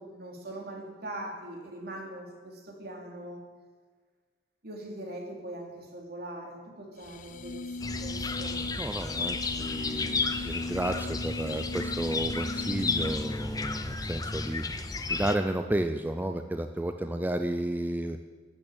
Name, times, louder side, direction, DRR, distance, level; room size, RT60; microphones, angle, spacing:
voice 1, 0.0-3.4 4.6-8.6, right 1 dB, 55° right, 1 dB, 3.1 m, -41 dB
sound 1, 7.0-13.5, left 2 dB, 45° left, 0.5 m, -39 dB
sound 2, 7.8-15.4, left 3 dB, 20° left, 0.8 m, -33 dB
voice 2, 8.8-14.6 15.1-18.2, right 1 dB, 10° right, 7 dB, 0.5 m, -32 dB
12.5 x 8.8 x 8.8 m, 1.5 s
head